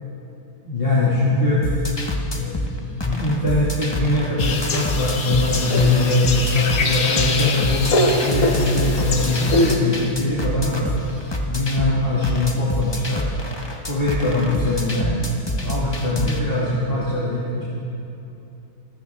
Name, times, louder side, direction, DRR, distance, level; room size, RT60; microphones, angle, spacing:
voice 1, 0.6-1.6 2.2-2.5 2.9-7.9 8.2-10.9 11.5-13.3 13.9-15.2 15.6-17.6, left 2 dB, 35° left, -8 dB, 2.5 m, -21 dB
sound 1, 1.6-16.4, equal, 20° left, 1.1 m, -27 dB
sound 2, 4.4-9.7, left 2 dB, 65° left, 1.7 m, -23 dB
27.5 x 14.0 x 3.6 m, 2.8 s
omnidirectional pair, 1.6 m